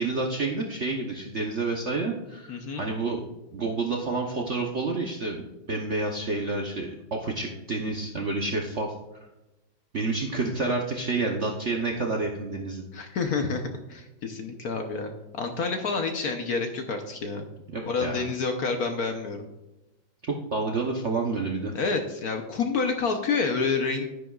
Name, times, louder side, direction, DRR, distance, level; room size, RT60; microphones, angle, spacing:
voice 1, 0.0-3.2 3.5-8.9 9.9-12.8 17.7-18.2 20.3-21.7, right 3 dB, 50° right, 0 dB, 0.8 m, -29 dB
voice 2, 2.5-2.8 12.9-17.4 17.8-19.4 21.7-24.1, left 4 dB, 60° left, 5 dB, 1.1 m, -28 dB
10.0 x 10.0 x 2.4 m, 0.99 s
omnidirectional pair, 2.2 m